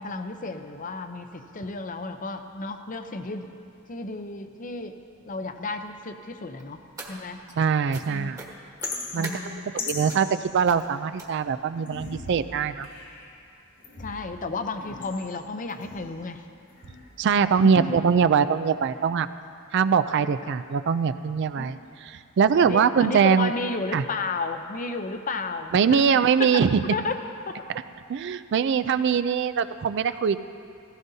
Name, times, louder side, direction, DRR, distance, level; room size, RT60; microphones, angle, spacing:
voice 1, 0.0-3.5 3.9-5.0 5.2-6.8 7.1-7.4 8.1-8.3 9.2-10.0 14.0-16.4 17.6-18.0 21.6-21.7 22.6-26.0 26.4-26.5 26.9-27.2 27.5-27.6, left 3 dB, 40° left, 7 dB, 0.6 m, -33 dB
sound 1, 6.6-7.6 7.9-8.1 8.3-9.4 10.1-10.3 10.6-10.8 11.2-11.6 12.3-12.4 12.8-12.9 13.2-13.3, right 2 dB, 15° right, 1.3 m, -41 dB
voice 2, 7.6-8.4 9.1-12.9 17.2-19.3 19.7-23.5 23.9-24.0 25.7-26.8 28.1-30.4, right 6 dB, 60° right, 12 dB, 0.4 m, -22 dB
sound 2, 8.8-11.2 11.8-13.4 13.8-16.3 16.7-17.4, left 4 dB, 55° left, 1.9 m, -39 dB
15.5 x 15.5 x 2.7 m, 2.5 s
head